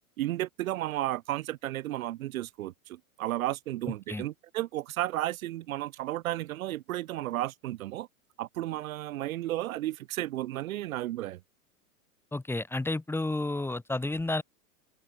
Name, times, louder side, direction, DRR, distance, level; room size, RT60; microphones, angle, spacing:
voice 1, 0.2-8.1 8.4-11.4, right 15 dB, 70° right, 1.0 m, -33 dB
voice 2, 12.3-14.4, left 2 dB, 5° left, 4.5 m, -31 dB
open air
hypercardioid pair, 125°, 42 cm